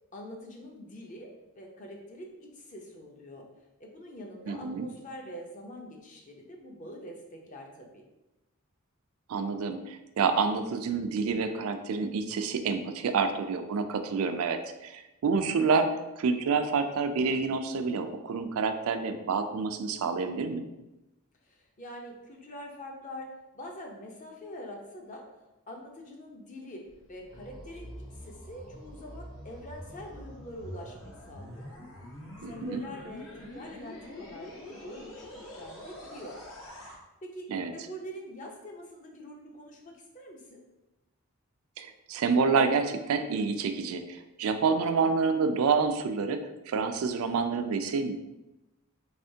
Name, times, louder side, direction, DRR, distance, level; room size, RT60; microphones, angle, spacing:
voice 1, 0.1-1.3 1.5-3.5 3.8-8.0 21.4-25.2 25.7-27.9 28.2-31.7 32.4-36.4 37.2-40.6, equal, 35° left, 1 dB, 0.6 m, -44 dB
voice 2, 4.5-4.9 9.3-15.9 16.2-20.7 32.4-32.8 37.5-37.7 41.8-48.2, right 5 dB, 75° right, 8 dB, 0.3 m, -28 dB
sound 1, 26.8-36.9, left 1 dB, 70° left, 0.9 m, -45 dB
3.5 x 3.3 x 2.7 m, 0.98 s
head